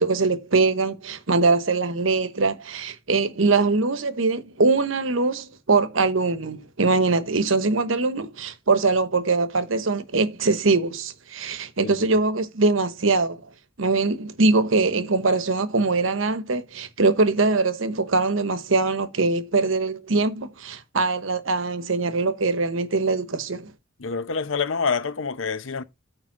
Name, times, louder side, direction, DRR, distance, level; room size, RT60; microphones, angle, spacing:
voice 1, 0.0-13.4 13.8-23.7, right 3 dB, 80° right, 1.0 m, -22 dB
voice 2, 24.0-25.8, left 5 dB, 80° left, 0.7 m, -27 dB
9.0 x 3.4 x 6.0 m
head